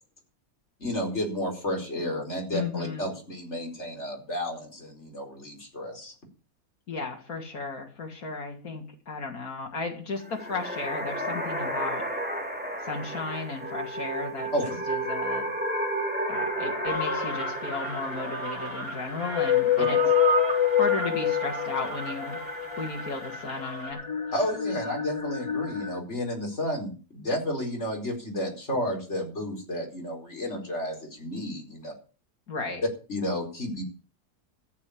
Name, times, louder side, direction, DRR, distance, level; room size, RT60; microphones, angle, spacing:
voice 1, 0.8-6.1 14.5-14.6 19.8-19.9 24.3-31.9 33.1-33.8, equal, 50° left, 1 dB, 5.0 m, -32 dB
voice 2, 2.5-3.1 6.9-12.0 12.8-15.5 16.3-20.0 20.8-22.4 22.8-24.0 32.5-32.8, left 4 dB, 75° left, 1 dB, 2.7 m, -34 dB
sound 1, 10.2-23.6, right 1 dB, 5° right, 2.9 m, -34 dB
sound 2, 16.5-26.0, left 11 dB, 25° left, 1.3 m, -28 dB
sound 3, 16.9-23.9, right 3 dB, 75° right, 2.8 m, -34 dB
14.0 x 7.8 x 8.5 m, 0.37 s
omnidirectional pair, 1.5 m